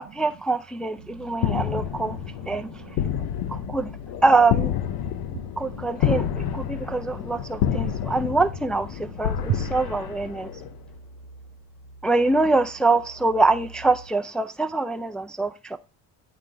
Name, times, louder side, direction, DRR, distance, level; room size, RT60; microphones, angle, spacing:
voice 1, 0.0-2.2 2.5-2.7 3.5-3.9 4.2-4.7 5.6-10.5 12.0-15.8, right 3 dB, ahead, 0.3 m, -24 dB
sound 1, 1.0-14.1, right 2 dB, 45° left, 1.0 m, -47 dB
voice 2, 1.0-3.1 3.5-3.8 5.0-5.9 7.7-8.2 9.0-9.8, right 12 dB, 55° right, 0.5 m, -37 dB
sound 2, 1.4-10.9, left 9 dB, 85° left, 0.7 m, -29 dB
8.7 x 3.8 x 3.3 m
cardioid pair, 100°, 35 cm